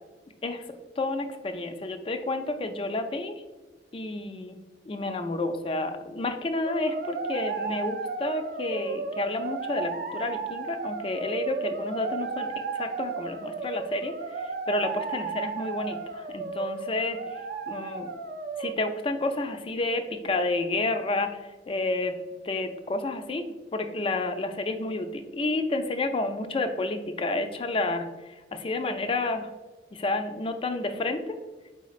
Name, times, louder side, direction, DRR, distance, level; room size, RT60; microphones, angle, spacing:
voice 1, 1.0-3.3 3.9-4.6 4.9-12.5 12.7-17.2 17.7-18.1 18.6-21.4 21.7-22.2 22.4-23.5 23.7-29.5 29.9-31.4, left 2 dB, 30° left, 7 dB, 0.3 m, -30 dB
sound 1, 6.6-18.7, right 4 dB, 50° right, 0.4 m, -34 dB
4.4 x 4.1 x 2.4 m, 1.2 s
head